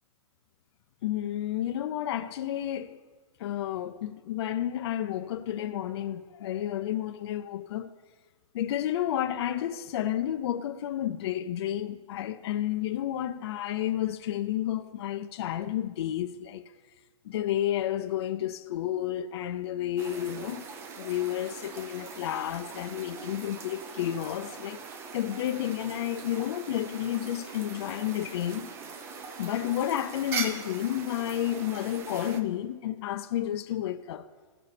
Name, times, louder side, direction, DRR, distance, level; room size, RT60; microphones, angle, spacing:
voice 1, 1.0-3.0 3.4-7.9 8.5-16.6 17.2-20.6 21.0-24.8 25.1-28.7 29.4-34.3, left 12 dB, 50° left, 0.5 m, -31 dB
sound 1, 20.0-32.4, right 5 dB, 15° right, 0.4 m, -41 dB
16.0 x 5.4 x 4.1 m
hypercardioid pair, 155°, 18 cm